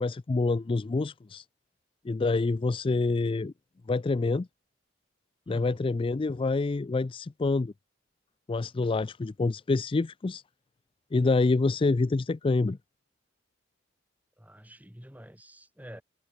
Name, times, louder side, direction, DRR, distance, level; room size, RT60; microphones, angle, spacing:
voice 1, 0.0-1.4 2.0-3.5 3.9-4.5 5.5-7.7 8.5-10.4 11.1-12.8, left 3 dB, 30° left, 0.4 m, -27 dB
voice 2, 14.4-16.0, equal, 10° right, 3.5 m, -47 dB
head